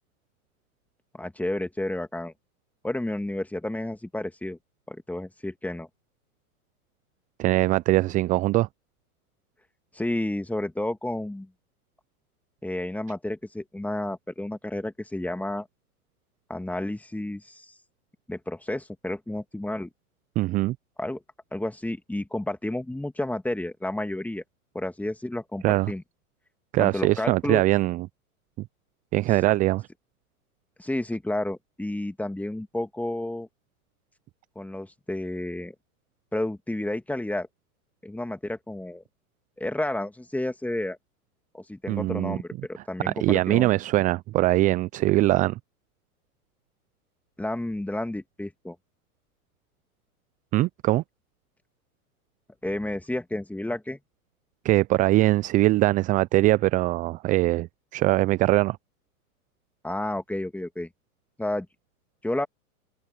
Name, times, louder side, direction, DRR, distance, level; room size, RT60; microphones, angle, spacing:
voice 1, 1.2-2.3 2.8-4.6 4.9-5.9 9.9-11.5 12.6-15.7 16.5-17.7 18.3-19.9 21.0-21.2 21.5-24.4 24.7-26.0 26.8-27.6 30.8-33.5 34.6-35.7 36.3-37.5 38.0-39.0 39.6-41.0 41.5-43.7 47.4-48.8 52.6-54.0 59.8-60.9 61.4-61.7 62.2-62.5, left 1 dB, 5° left, 2.6 m, -31 dB
voice 2, 7.4-8.7 20.4-20.8 25.6-25.9 26.7-28.1 29.1-29.8 41.9-42.4 43.0-45.6 50.5-51.0 54.6-58.8, right 17 dB, 20° right, 0.4 m, -22 dB
hypercardioid pair, 105°, 45 cm